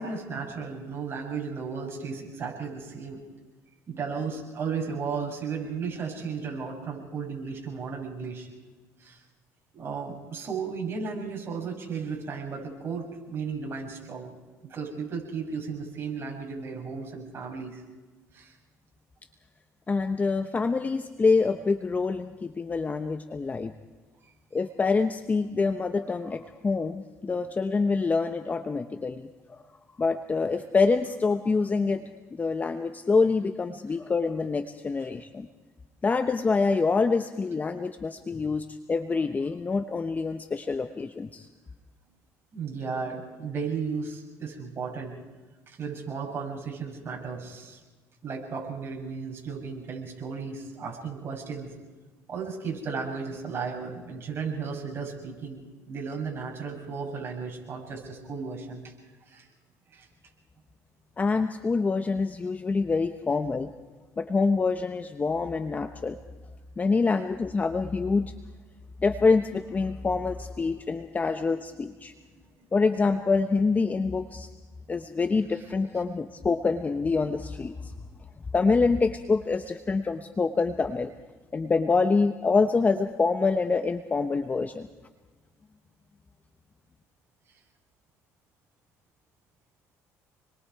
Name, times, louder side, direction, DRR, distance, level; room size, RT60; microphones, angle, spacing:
voice 1, 0.0-3.2 3.9-8.5 9.0-9.2 9.7-14.3 14.6-17.8 18.3-18.5 42.5-45.2 45.7-47.8 48.2-51.7 52.3-55.6 55.9-58.8 59.3-59.5 59.9-60.1, right 5 dB, 40° right, -1 dB, 7.6 m, -34 dB
voice 2, 19.9-23.7 24.5-29.6 30.0-32.0 32.3-35.5 36.0-41.5 61.2-63.7 64.2-66.2 66.8-68.3 69.0-72.1 72.7-74.5 74.9-77.9 78.5-81.1 81.5-84.9, left 4 dB, 25° left, 8 dB, 1.0 m, -26 dB
28.5 x 22.0 x 4.8 m, 1.3 s
cardioid pair, 95°, 6 cm